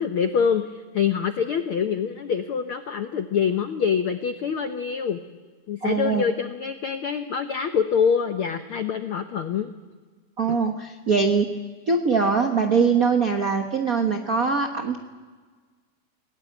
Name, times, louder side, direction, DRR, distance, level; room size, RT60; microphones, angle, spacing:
voice 1, 0.0-5.2 5.7-9.7 10.5-10.6, left 7 dB, 75° left, 9 dB, 1.2 m, -25 dB
voice 2, 5.8-6.2 10.4-11.5 11.9-15.0, right 5 dB, 90° right, 5 dB, 0.7 m, -22 dB
29.0 x 17.5 x 9.1 m, 1.4 s
omnidirectional pair, 3.6 m